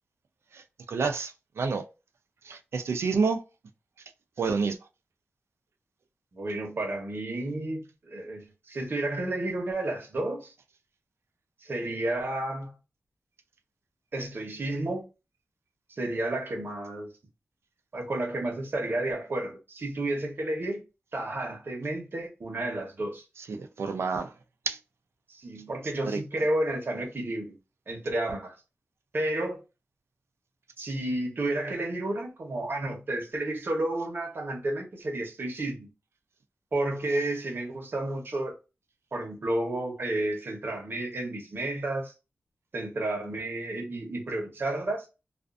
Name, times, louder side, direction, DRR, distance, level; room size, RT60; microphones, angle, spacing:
voice 1, 0.5-1.8 2.4-3.4 4.4-4.8 23.5-24.3 24.7-24.8 26.1-26.2, right 4 dB, 90° right, 0.4 m, -29 dB
voice 2, 6.3-10.5 11.6-12.8 14.1-15.1 15.9-17.1 17.9-20.8 21.1-23.2 25.3-27.6 27.9-28.5 29.1-29.6 30.8-35.9 36.7-38.6 39.1-42.1 42.7-45.1, right 1 dB, 55° right, 0.9 m, -31 dB
2.5 x 2.4 x 2.4 m
wide cardioid pair, 90°, 4 cm